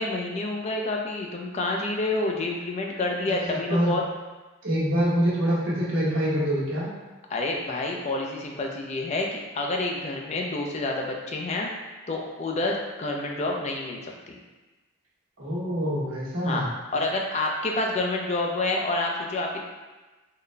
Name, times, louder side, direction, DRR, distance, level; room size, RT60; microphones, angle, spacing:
voice 1, 0.0-4.0 7.3-11.7 12.1-14.4 16.4-16.7 16.9-19.6, left 2 dB, 35° left, 0 dB, 0.4 m, -28 dB
voice 2, 3.4-4.0 4.6-6.9 15.4-16.7, equal, 70° right, -8 dB, 1.2 m, -25 dB
3.9 x 2.2 x 3.2 m, 1.2 s
head